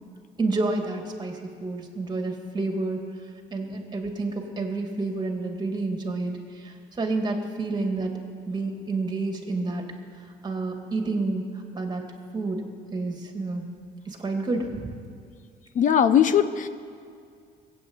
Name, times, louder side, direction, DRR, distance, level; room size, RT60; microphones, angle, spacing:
voice 1, 0.4-3.0 3.5-8.2 8.5-9.8 10.4-12.0 12.3-12.6 12.9-13.7 14.1-14.9, right 3 dB, 25° right, 3 dB, 2.3 m, -29 dB
voice 2, 15.8-16.7, left 9 dB, 50° left, 12 dB, 0.7 m, -19 dB
19.0 x 8.7 x 8.0 m, 2.2 s
cardioid pair, 110°, 17 cm